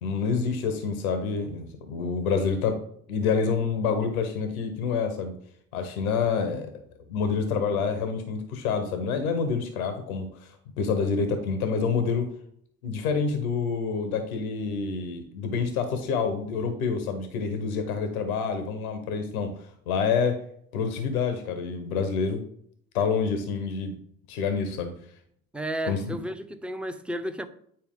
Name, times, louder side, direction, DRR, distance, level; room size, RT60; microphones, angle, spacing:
voice 1, 0.0-2.8 3.1-5.4 5.7-6.7 7.1-12.3 12.8-19.5 19.9-20.4 20.7-22.4 22.9-23.9 24.3-24.9 25.8-26.2, left 5 dB, 80° left, 1.1 m, -27 dB
voice 2, 25.5-27.5, right 1 dB, 5° right, 0.7 m, -32 dB
9.2 x 4.4 x 3.7 m
hypercardioid pair, 60°, 42 cm